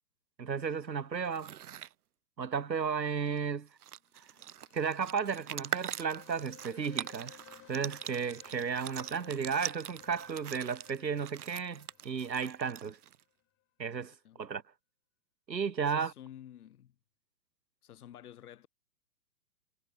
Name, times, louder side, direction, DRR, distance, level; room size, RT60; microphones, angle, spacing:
voice 1, 0.4-1.6 2.4-3.7 4.7-7.4 7.7-13.0 13.8-14.6 15.5-16.1, right 6 dB, 90° right, 2.8 m, -34 dB
sound 1, 1.2-1.9 3.4-3.5 3.7-13.2, right 11 dB, 60° right, 5.7 m, -43 dB
sound 2, 4.2-13.0, left 15 dB, 25° left, 4.6 m, -58 dB
voice 2, 15.8-16.9 17.8-18.7, left 11 dB, 60° left, 4.7 m, -51 dB
hypercardioid pair, 125°, 49 cm